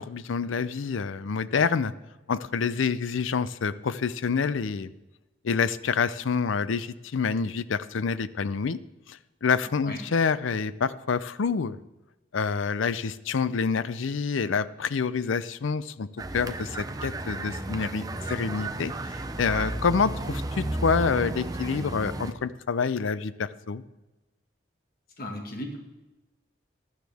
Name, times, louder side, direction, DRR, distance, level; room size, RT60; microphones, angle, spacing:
voice 1, 0.0-1.9 2.3-4.9 5.4-8.8 9.1-11.8 12.3-16.1 16.3-23.8, left 5 dB, 85° left, 16 dB, 0.5 m, -27 dB
sound 1, 16.2-22.3, right 1 dB, 20° right, 0.6 m, -33 dB
voice 2, 25.2-25.8, left 1 dB, 50° left, 3 dB, 1.8 m, -35 dB
15.5 x 11.5 x 3.5 m, 1.1 s
head